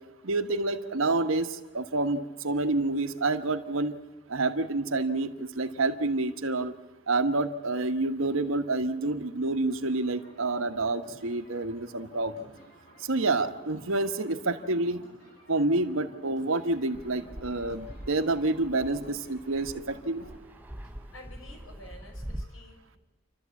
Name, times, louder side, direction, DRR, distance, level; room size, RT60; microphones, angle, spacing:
voice 1, 0.2-3.9 4.3-6.7 7.1-12.3 13.0-15.0 15.5-20.2, right 2 dB, 85° right, 8 dB, 1.3 m, -28 dB
sound 1, 9.7-20.3, right 1 dB, 50° left, 7.5 m, -53 dB
Fixed-wing aircraft airplane, 16.9-22.4, equal, 10° right, 0.6 m, -43 dB
voice 2, 20.8-23.0, left 1 dB, 85° left, 2 dB, 5.6 m, -51 dB
28.5 x 12.5 x 8.4 m, 1.1 s
head